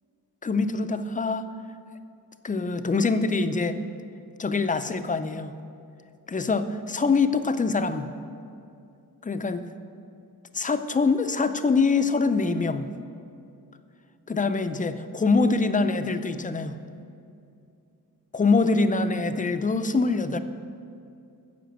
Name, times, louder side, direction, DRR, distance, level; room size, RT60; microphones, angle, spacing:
voice 1, 0.4-1.4 2.4-3.8 4.4-5.5 6.3-8.1 9.3-9.6 10.5-12.9 14.3-16.8 18.3-20.4, left 4 dB, 20° left, 10 dB, 0.5 m, -24 dB
10.5 x 6.9 x 8.0 m, 2.6 s
wide cardioid pair, 125°, 36 cm